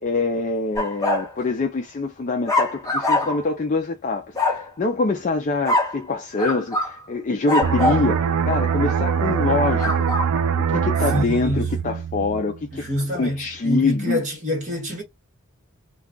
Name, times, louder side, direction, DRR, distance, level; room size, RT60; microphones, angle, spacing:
voice 1, 0.0-10.3 10.6-12.9 13.1-14.2, left 3 dB, 35° left, 0.4 m, -25 dB
sound 1, 0.8-1.3 2.5-3.5 4.4-4.7 5.6-6.0 6.4-6.9 7.5-8.1 9.8-10.3, left 2 dB, 15° left, 0.8 m, -23 dB
sound 2, 7.6-13.0 13.3-13.6, right 7 dB, 80° right, 0.4 m, -23 dB
voice 2, 11.1-11.7 12.7-15.0, left 1 dB, 35° right, 1.1 m, -26 dB
2.3 x 2.2 x 3.7 m
head